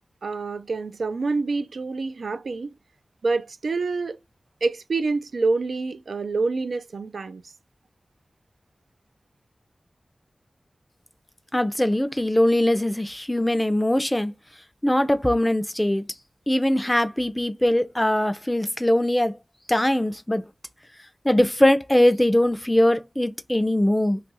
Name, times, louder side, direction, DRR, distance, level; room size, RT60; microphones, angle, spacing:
voice 1, 0.2-2.7 3.2-4.2 4.6-7.4, right 3 dB, 85° right, 0.3 m, -27 dB
voice 2, 11.5-14.3 14.8-16.0 16.5-19.4 19.7-20.4 21.2-24.2, left 1 dB, 10° left, 0.4 m, -21 dB
2.9 x 2.4 x 3.9 m
wide cardioid pair, 100°, 0 cm